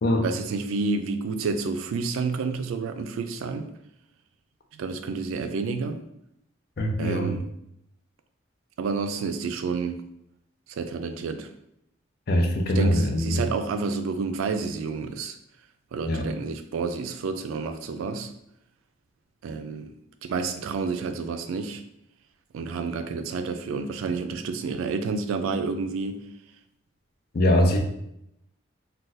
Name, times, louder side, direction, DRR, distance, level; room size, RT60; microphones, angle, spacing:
voice 1, 0.2-3.7 4.7-6.0 7.0-7.4 8.8-10.0 10.7-11.5 12.8-15.4 15.9-18.3 19.4-19.9 20.2-21.8 22.5-26.3, right 4 dB, 85° right, 8 dB, 0.3 m, -29 dB
voice 2, 6.8-7.4 12.3-13.4 16.0-16.3 27.3-27.8, left 1 dB, 50° left, 3 dB, 0.4 m, -22 dB
2.5 x 2.2 x 3.9 m, 0.79 s
head